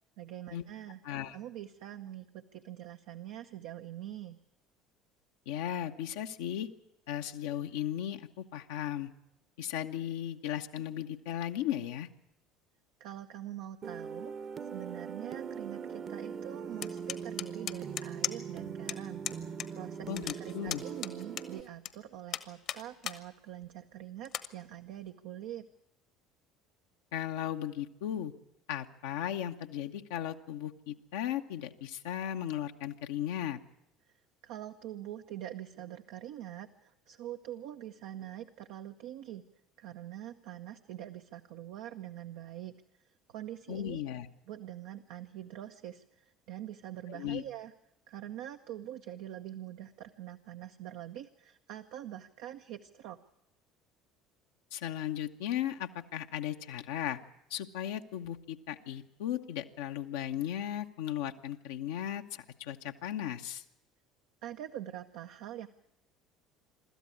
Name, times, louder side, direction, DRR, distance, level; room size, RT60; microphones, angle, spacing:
voice 1, 0.2-1.0 1.3-4.4 13.0-14.3 14.7-20.1 20.4-25.7 34.4-39.4 39.8-42.8 43.3-44.0 44.5-47.7 48.1-53.2 64.4-65.7, right 12 dB, 60° right, 6 dB, 0.8 m, -44 dB
voice 2, 1.0-1.4 5.5-6.7 7.1-9.1 9.6-12.1 20.1-20.8 27.1-28.3 28.7-33.6 43.7-44.3 47.1-47.4 54.7-57.2 57.5-63.6, left 11 dB, 65° left, 4 dB, 0.9 m, -36 dB
sound 1, 13.8-21.6, right 6 dB, 40° right, 1.1 m, -41 dB
sound 2, 16.8-18.6 18.9-19.0 19.2-19.7 19.9-21.9 22.3-23.2 23.6-23.7 24.2-24.5, left 10 dB, 50° left, 1.2 m, -37 dB
25.0 x 13.5 x 9.7 m, 0.88 s
figure-of-eight pair, 65°, 0 cm